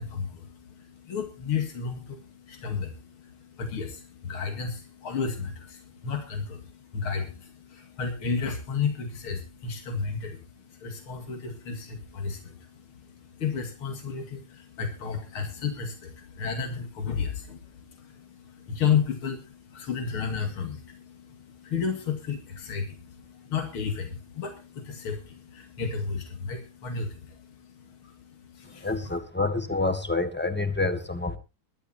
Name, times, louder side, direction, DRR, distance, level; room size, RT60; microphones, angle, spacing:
voice 1, 0.0-29.2, left 6 dB, 80° left, 5 dB, 3.1 m, -33 dB
voice 2, 28.8-31.4, left 3 dB, 5° left, 8 dB, 1.6 m, -27 dB
22.5 x 12.0 x 2.8 m, 0.30 s
omnidirectional pair, 2.3 m